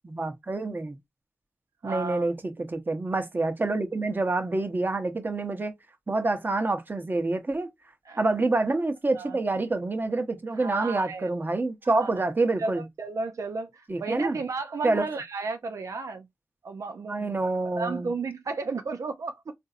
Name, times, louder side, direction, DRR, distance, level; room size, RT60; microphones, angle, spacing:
voice 1, 0.0-1.0 1.8-5.7 6.1-7.7 8.2-12.8 13.9-14.4 14.8-15.0 17.1-18.1, right 2 dB, 35° right, 0.9 m, -27 dB
voice 2, 1.8-2.3 8.1-8.2 9.1-9.4 10.6-11.3 11.8-12.1 12.6-16.3 16.6-17.5 17.8-19.5, right 4 dB, 75° right, 0.5 m, -33 dB
3.9 x 2.6 x 2.5 m
wide cardioid pair, 70°, 5 cm